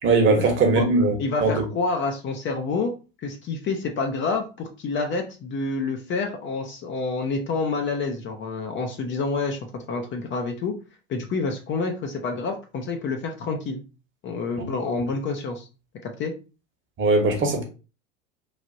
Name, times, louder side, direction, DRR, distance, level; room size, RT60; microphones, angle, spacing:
voice 1, 0.0-1.1 1.4-1.6 14.6-14.7 17.0-17.6, right 3 dB, 35° right, 1.1 m, -20 dB
voice 2, 1.2-2.9 3.2-10.7 11.1-13.8 14.2-15.7 16.2-16.3, left 4 dB, 30° left, 0.6 m, -28 dB
3.2 x 2.4 x 2.6 m
hypercardioid pair, 90°, 36 cm